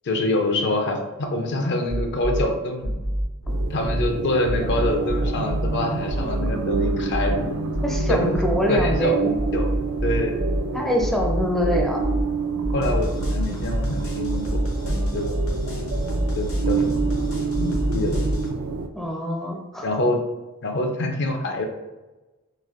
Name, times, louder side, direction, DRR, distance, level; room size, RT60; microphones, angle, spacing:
voice 1, 0.0-2.9 3.7-7.6 8.1-8.4 8.7-9.7 10.0-10.3 12.7-15.3 16.4-17.0 17.6-18.2 19.8-20.2 20.6-21.7, left 1 dB, 55° left, 4 dB, 0.5 m, -25 dB
sound 1, 1.9-2.4 2.8-4.1 4.4-5.7 6.1-7.3 7.7-9.0 9.3-10.6 11.0-12.2 12.6-18.5, equal, 80° left, 0.9 m, -26 dB
sound 2, 3.5-18.9, right 4 dB, 80° right, 0.3 m, -29 dB
voice 2, 7.8-9.4 10.7-12.0 18.9-19.9, equal, ahead, -1 dB, 0.4 m, -24 dB
4.0 x 2.5 x 2.5 m, 1.1 s
head